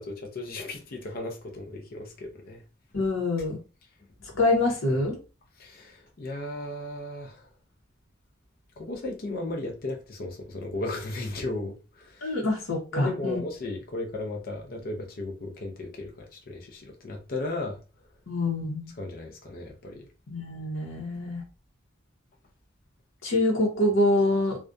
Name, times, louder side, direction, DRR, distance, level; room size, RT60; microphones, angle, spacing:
voice 1, 0.0-2.6 4.2-4.4 5.6-7.5 8.8-12.3 12.9-17.8 19.0-20.1, left 2 dB, 50° left, 0.5 m, -35 dB
voice 2, 2.9-3.6 4.4-5.2 12.2-13.4 18.3-18.9 20.3-21.4 23.2-24.6, left 2 dB, 75° left, 0.8 m, -25 dB
2.4 x 2.2 x 2.5 m
head